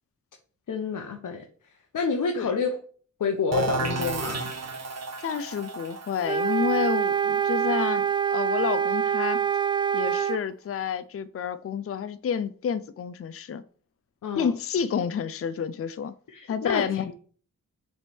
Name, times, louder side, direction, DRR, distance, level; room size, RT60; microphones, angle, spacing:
voice 1, 0.7-1.4 1.9-2.8 3.2-4.4 14.2-14.5 16.3-16.8, left 5 dB, 65° left, 1.1 m, -28 dB
sound 1, 3.5-9.1, right 3 dB, 50° right, 1.3 m, -33 dB
voice 2, 5.2-9.4 9.9-13.6 14.3-16.1 16.5-17.2, left 7 dB, 45° left, 0.5 m, -29 dB
sound 2, 6.2-10.4, right 7 dB, 15° right, 0.3 m, -25 dB
7.1 x 3.5 x 4.4 m
cardioid pair, 70°, 33 cm